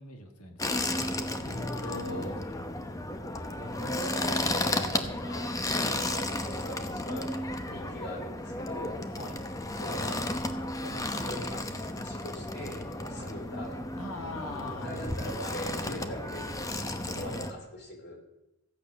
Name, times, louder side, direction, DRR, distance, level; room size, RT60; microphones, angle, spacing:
voice 1, 0.0-2.4 7.7-8.0 9.2-9.5 13.2-13.4 14.0-15.3 17.1-17.5, left 1 dB, 85° left, 5 dB, 1.7 m, -43 dB
sound 1, 0.6-17.5, left 2 dB, 15° left, 0.7 m, -33 dB
voice 2, 1.4-2.3 3.6-7.4 7.7-9.0 9.8-10.3 10.8-13.8 14.8-16.6 17.1-18.2, equal, 50° left, 2 dB, 3.3 m, -41 dB
15.0 x 8.6 x 6.3 m, 0.92 s
head